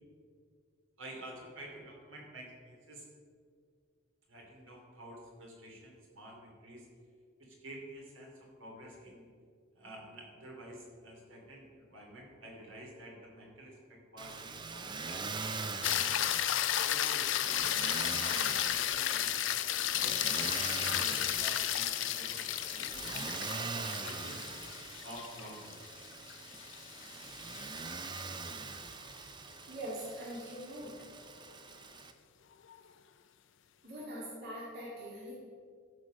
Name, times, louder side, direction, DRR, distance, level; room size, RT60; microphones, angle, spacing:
voice 1, 1.0-3.1 4.3-6.9 7.4-9.3 9.8-16.2 16.7-19.5 20.0-23.3 24.0-24.4 25.0-25.8, right 1 dB, 70° right, -1 dB, 2.7 m, -50 dB
Motor vehicle (road), 14.2-32.1, right 4 dB, 20° right, 0.5 m, -42 dB
sound 1, 15.8-28.2 32.7-32.8, left 12 dB, 65° left, 0.4 m, -33 dB
voice 2, 29.7-30.9 33.8-35.3, right 1 dB, 50° right, -7 dB, 2.0 m, -42 dB
14.0 x 4.8 x 6.4 m, 2.1 s
head